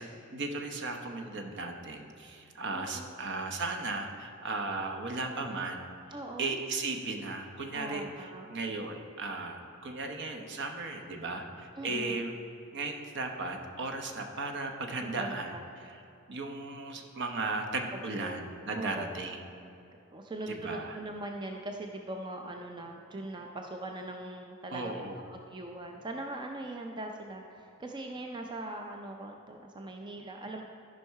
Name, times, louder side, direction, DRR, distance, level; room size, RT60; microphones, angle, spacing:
voice 1, 0.0-5.8 6.4-12.3 12.7-15.6 15.8-16.0 16.3-19.5 20.5-21.0 24.7-25.2, right 3 dB, 55° right, 4 dB, 0.9 m, -36 dB
voice 2, 2.7-3.1 6.1-6.6 7.7-8.5 11.8-12.2 15.0-15.7 18.2-18.4 18.7-19.1 20.1-25.0 25.3-30.7, right 1 dB, 20° right, 3 dB, 0.4 m, -41 dB
12.5 x 5.5 x 4.7 m, 2.8 s
head